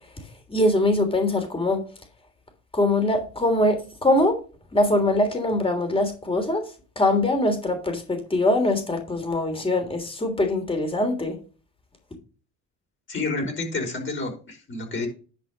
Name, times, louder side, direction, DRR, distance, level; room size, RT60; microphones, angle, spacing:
voice 1, 0.5-1.8 2.7-4.4 4.7-6.6 6.9-11.4, left 1 dB, 15° left, 3.2 m, -22 dB
voice 2, 13.1-15.1, left 3 dB, 35° left, 4.7 m, -29 dB
10.5 x 5.1 x 5.3 m
supercardioid pair, 80°, 36 cm